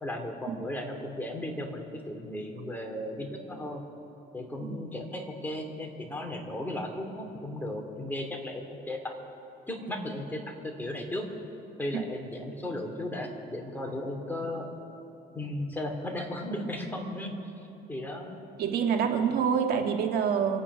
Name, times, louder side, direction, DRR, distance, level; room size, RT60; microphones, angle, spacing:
voice 1, 0.0-3.8 4.3-9.1 9.7-11.3 11.8-14.7 15.3-17.4 17.9-18.3, left 1 dB, 10° left, 2 dB, 2.5 m, -35 dB
voice 2, 18.6-20.6, right 7 dB, 65° right, 4 dB, 1.7 m, -26 dB
26.0 x 9.0 x 6.1 m, 2.9 s
cardioid pair, 110°, 17 cm